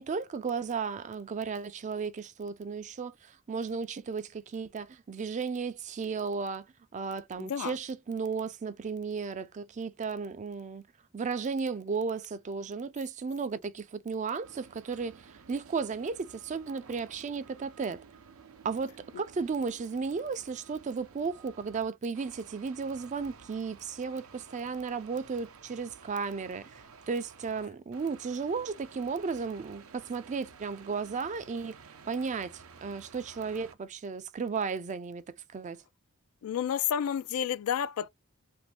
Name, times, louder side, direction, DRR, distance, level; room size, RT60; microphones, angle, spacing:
voice 1, 0.0-6.7 6.9-10.8 11.1-18.0 18.6-31.8 32.1-35.8, right 5 dB, 35° right, 0.4 m, -34 dB
voice 2, 7.4-7.7 36.4-38.1, left 9 dB, 85° left, 0.3 m, -30 dB
sound 1, 14.4-21.9 22.1-27.7 27.9-33.7, right 5 dB, 80° right, 0.6 m, -53 dB
3.0 x 2.6 x 3.2 m
head